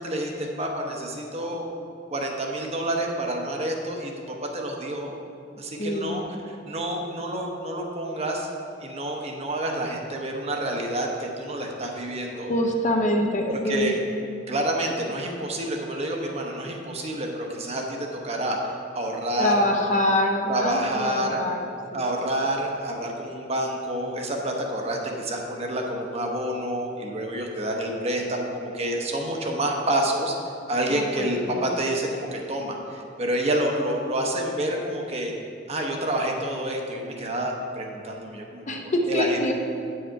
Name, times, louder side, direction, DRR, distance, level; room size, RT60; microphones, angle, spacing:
voice 1, 0.0-1.7 2.1-5.1 5.6-8.5 8.8-12.5 13.5-14.0 14.5-19.7 20.5-21.4 21.9-30.4 30.7-35.3 35.7-39.5, right 1 dB, 35° right, 1 dB, 0.9 m, -28 dB
voice 2, 5.8-6.2 12.5-13.9 19.4-21.6 30.9-31.7 38.7-39.5, left 1 dB, 40° left, 2 dB, 0.7 m, -25 dB
8.5 x 6.4 x 4.6 m, 2.5 s
head